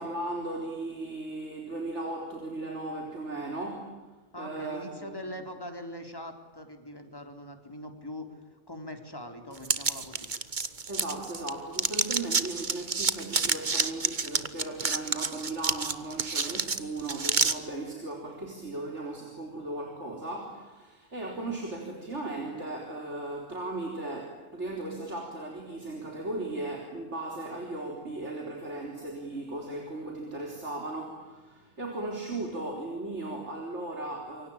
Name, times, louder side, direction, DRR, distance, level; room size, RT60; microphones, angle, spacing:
voice 1, 0.0-4.0 4.4-5.3 10.9-34.5, right 2 dB, 70° right, 2 dB, 4.4 m, -37 dB
voice 2, 4.3-10.3, left 1 dB, 20° left, 6 dB, 3.8 m, -42 dB
sound 1, 9.6-11.5 11.8-17.5, right 4 dB, 40° right, 1.5 m, -28 dB
28.0 x 24.0 x 8.8 m, 1.2 s
omnidirectional pair, 1.2 m